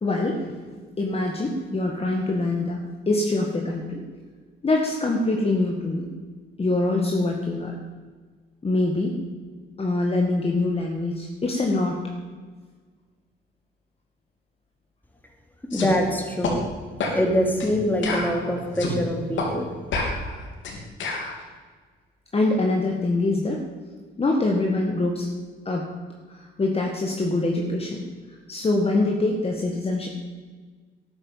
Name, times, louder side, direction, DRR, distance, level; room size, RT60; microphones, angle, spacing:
voice 1, 0.0-0.6 1.0-4.0 4.6-6.1 6.6-7.8 8.6-9.1 9.8-12.0 22.3-23.6 24.2-25.3 25.6-25.9 26.3-28.0 28.5-30.1, left 2 dB, 30° left, 0 dB, 1.8 m, -24 dB
sound 1, 15.7-15.9 16.4-16.6 17.0-17.2 17.6-17.7 18.0-19.0 19.4-19.5 19.9-21.3, left 3 dB, 75° left, 3.2 m, -28 dB
voice 2, 15.7-16.6 17.1-19.7, equal, 10° left, 2 dB, 3.1 m, -24 dB
12.5 x 9.9 x 7.3 m, 1.5 s
cardioid pair, 90°, 20 cm